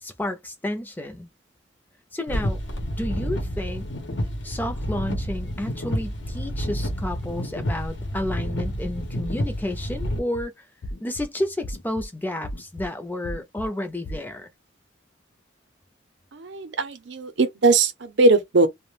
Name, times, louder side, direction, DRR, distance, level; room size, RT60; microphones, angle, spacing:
voice 1, 0.0-1.3 2.1-3.9 4.4-10.6 11.0-14.5, left 1 dB, 10° left, 0.5 m, -31 dB
sound 1, 2.3-10.2, equal, 75° left, 0.8 m, -29 dB
sound 2, 9.2-9.6 10.0-10.4 10.8-11.3 11.6-12.1 12.4-12.9 13.2-13.7 14.0-14.2, left 1 dB, 90° left, 0.5 m, -35 dB
voice 2, 16.3-18.7, right 3 dB, 75° right, 0.6 m, -20 dB
2.3 x 2.1 x 3.2 m
head